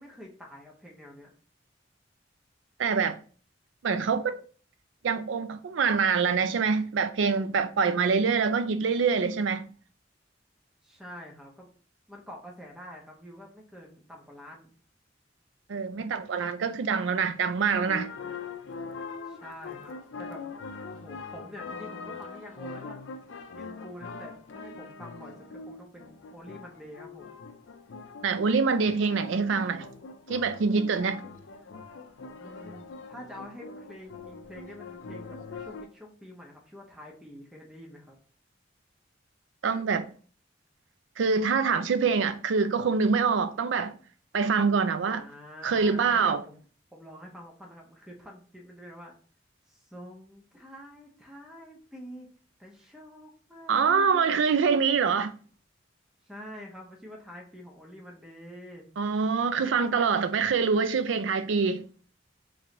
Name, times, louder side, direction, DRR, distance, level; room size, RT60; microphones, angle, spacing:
voice 1, 0.0-1.3 10.8-11.7 12.1-14.7 19.3-20.4 20.9-23.0 23.5-27.4 32.4-38.2 45.1-46.6 46.9-49.1 49.7-52.3 52.6-54.4 56.2-58.8, equal, 5° right, 0.7 m, -46 dB
voice 2, 2.8-3.2 3.8-4.4 5.0-9.7 15.7-18.1 28.2-29.9 30.3-31.3 39.6-40.1 41.2-43.9 44.3-45.2 45.6-46.4 53.7-55.3 59.0-61.9, right 5 dB, 90° right, 0.4 m, -25 dB
sound 1, 17.7-35.9, left 4 dB, 85° left, 0.5 m, -42 dB
3.2 x 3.0 x 3.7 m
head